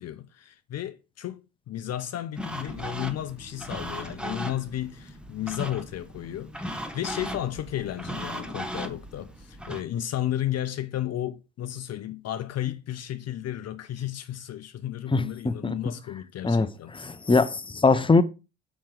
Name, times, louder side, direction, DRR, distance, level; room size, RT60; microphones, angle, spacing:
voice 1, 0.0-17.2, left 12 dB, 45° left, 0.8 m, -33 dB
sound 1, 2.4-9.8, equal, 5° right, 1.5 m, -37 dB
voice 2, 15.1-15.8 16.4-18.2, left 3 dB, 15° left, 1.0 m, -22 dB
7.3 x 6.1 x 5.1 m
hypercardioid pair, 55°, 36 cm